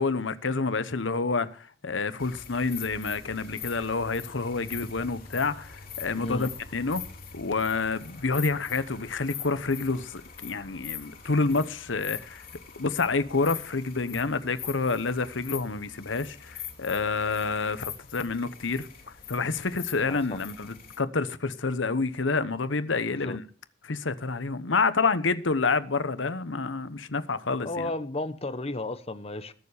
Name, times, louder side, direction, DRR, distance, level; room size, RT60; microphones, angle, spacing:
voice 1, 0.0-7.0 7.3-12.4 12.8-23.4 23.8-27.9, left 4 dB, 75° left, 1.0 m, -28 dB
sound 1, 2.2-21.0, left 8 dB, 50° left, 2.6 m, -43 dB
voice 2, 20.1-20.4 23.1-23.4 27.5-29.5, left 2 dB, 30° left, 1.1 m, -34 dB
20.5 x 7.2 x 5.0 m
head